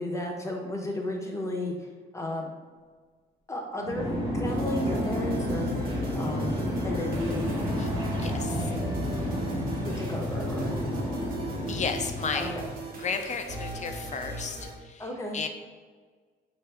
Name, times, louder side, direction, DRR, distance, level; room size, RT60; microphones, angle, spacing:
voice 1, 0.0-1.9 2.1-2.5 3.5-4.1 4.3-7.6 9.4-9.5 9.8-10.9 12.3-12.7 15.0-15.4, left 1 dB, 15° left, 1 dB, 0.8 m, -34 dB
sound 1, 3.8-12.8, equal, 25° right, 1.2 m, -30 dB
sound 2, 4.4-14.8, right 3 dB, 50° right, 0.9 m, -41 dB
voice 2, 8.2-8.7 9.2-9.3 11.7-12.5 13.0-15.5, left 5 dB, 35° left, 6 dB, 0.5 m, -34 dB
4.7 x 2.6 x 3.4 m, 1.5 s
cardioid pair, 90°, 20 cm